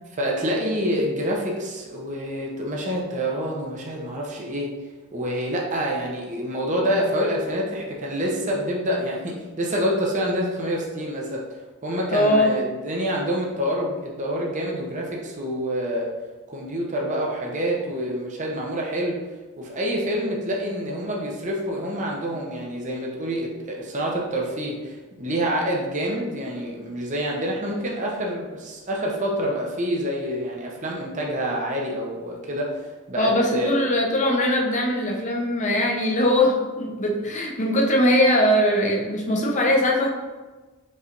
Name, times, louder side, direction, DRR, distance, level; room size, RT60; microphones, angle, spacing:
voice 1, 0.1-4.7 5.1-11.4 11.8-16.1 16.5-19.2 19.6-33.7, equal, 35° right, -2 dB, 0.7 m, -27 dB
voice 2, 12.1-12.5 33.2-40.1, left 1 dB, 35° left, 0 dB, 0.7 m, -21 dB
5.4 x 3.3 x 2.5 m, 1.2 s
head